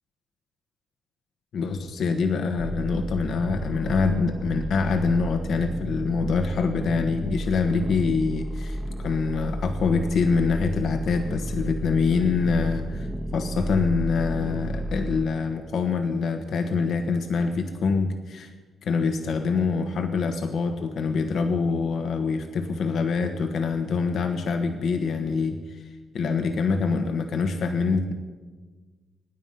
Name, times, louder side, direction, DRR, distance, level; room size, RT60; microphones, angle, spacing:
voice 1, 1.5-18.5 18.8-25.9 26.1-28.1, left 4 dB, 65° left, 6 dB, 1.3 m, -25 dB
sound 1, 2.6-15.2, right 1 dB, 15° right, 1.2 m, -32 dB
24.0 x 9.7 x 5.5 m, 1.4 s
cardioid pair, 90°, 0 cm